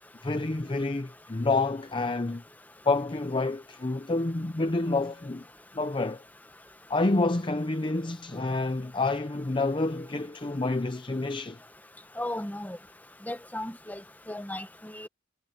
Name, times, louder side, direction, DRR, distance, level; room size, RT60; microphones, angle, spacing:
voice 1, 0.2-2.4 2.8-5.5 5.7-6.2 6.9-11.6, left 2 dB, 25° left, 0.6 m, -28 dB
voice 2, 12.2-12.8 13.3-14.0 14.3-15.1, left 1 dB, 10° left, 1.1 m, -35 dB
head